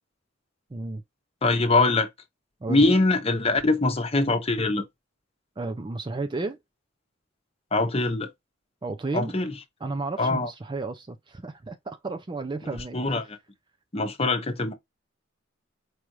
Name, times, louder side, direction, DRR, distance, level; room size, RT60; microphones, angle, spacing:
voice 1, 0.7-1.0 2.6-2.9 5.6-6.6 8.8-9.4 9.8-13.0, right 3 dB, 25° right, 0.4 m, -32 dB
voice 2, 1.4-2.1 2.7-4.8 7.7-8.3 9.1-9.5 10.2-10.5 12.9-13.2 13.9-14.7, left 2 dB, 30° left, 0.9 m, -23 dB
4.7 x 2.5 x 3.0 m
head